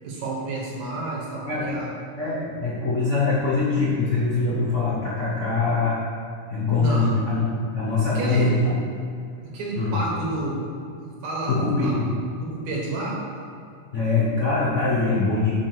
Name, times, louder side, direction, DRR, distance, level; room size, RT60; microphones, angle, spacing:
voice 1, 0.0-1.9 6.8-7.1 8.0-8.6 9.5-10.6 11.0-12.0 12.4-13.2, right 2 dB, 70° right, -4 dB, 2.8 m, -30 dB
voice 2, 2.2-6.0 6.5-7.5 7.7-8.7 9.7-10.0 11.5-12.0 13.9-15.5, left 3 dB, 75° left, -7 dB, 0.6 m, -23 dB
6.0 x 4.9 x 6.2 m, 2.5 s
omnidirectional pair, 3.4 m